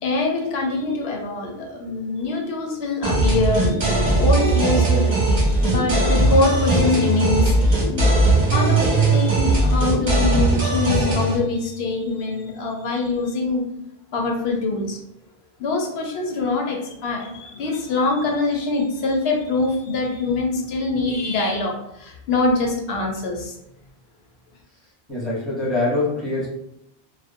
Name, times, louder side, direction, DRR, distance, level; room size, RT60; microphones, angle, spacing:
voice 1, 0.0-7.8 8.5-13.6 14.1-15.0 15.6-23.6, left 3 dB, 80° left, 0 dB, 0.8 m, -24 dB
sound 1, 3.0-11.4, right 2 dB, 45° right, 0.7 m, -19 dB
voice 2, 25.1-26.5, left 2 dB, ahead, -7 dB, 0.8 m, -24 dB
2.5 x 2.2 x 2.5 m, 0.77 s
omnidirectional pair, 1.1 m